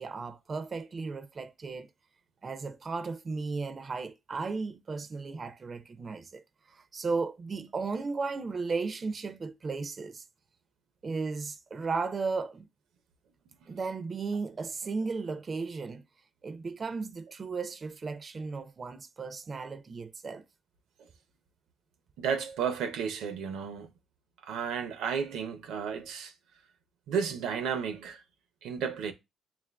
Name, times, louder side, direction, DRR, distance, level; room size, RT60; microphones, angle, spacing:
voice 1, 0.0-1.9 2.4-10.3 11.0-12.7 13.7-16.0 16.4-20.4, right 4 dB, 40° right, 0.4 m, -35 dB
voice 2, 22.2-23.9 24.4-26.3 27.1-28.2 28.6-29.1, right 7 dB, 90° right, 0.6 m, -32 dB
7.0 x 2.4 x 2.2 m
cardioid pair, 90°, 0 cm